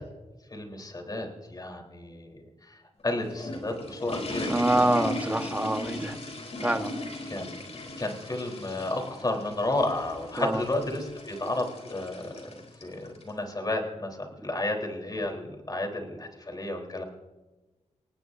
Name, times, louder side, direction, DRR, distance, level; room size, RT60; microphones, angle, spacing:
voice 1, 0.5-2.3 2.7-2.8 3.0-4.8 7.3-7.6 8.0-12.5 12.8-14.2 14.4-17.0, left 2 dB, 30° left, 3 dB, 3.7 m, -32 dB
sound 1, 3.0-13.3, left 1 dB, 55° left, 3.8 m, -38 dB
voice 2, 4.5-6.1 6.6-6.9 10.4-10.6, right 1 dB, 10° right, 7 dB, 1.3 m, -25 dB
26.0 x 18.5 x 2.7 m, 1.1 s
cardioid pair, 75°, 12 cm